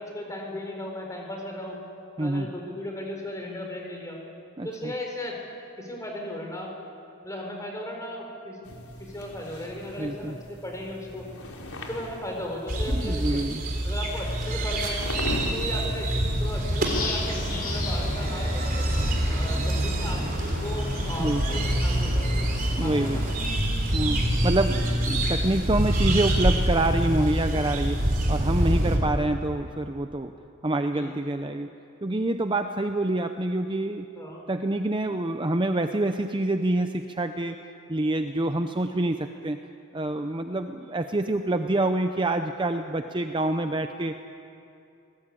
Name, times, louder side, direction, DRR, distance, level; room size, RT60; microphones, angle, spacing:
voice 1, 0.0-1.8 2.2-4.2 4.6-5.4 5.8-6.8 7.2-8.6 9.0-11.3 11.9-13.4 13.8-15.1 15.5-18.9 19.3-20.2 20.6-22.4 22.8-23.2 28.9-29.0 30.9-31.1 34.2-34.4, left 1 dB, 15° left, 1 dB, 4.4 m, -36 dB
voice 2, 2.2-2.5 4.6-4.9 10.0-10.4 12.9-13.6 21.2-21.4 22.8-23.2 23.9-30.3 30.6-31.7 32.0-34.1 34.5-37.6 37.9-39.6 39.9-44.2, right 2 dB, 20° right, 7 dB, 0.7 m, -27 dB
sound 1, 8.6-18.1, left 1 dB, 90° left, 3.8 m, -39 dB
sound 2, 12.7-29.0, right 1 dB, 40° right, 3.5 m, -26 dB
sound 3, 16.8-23.4, left 1 dB, 40° left, 5.5 m, -34 dB
26.0 x 19.0 x 8.7 m, 2.7 s
head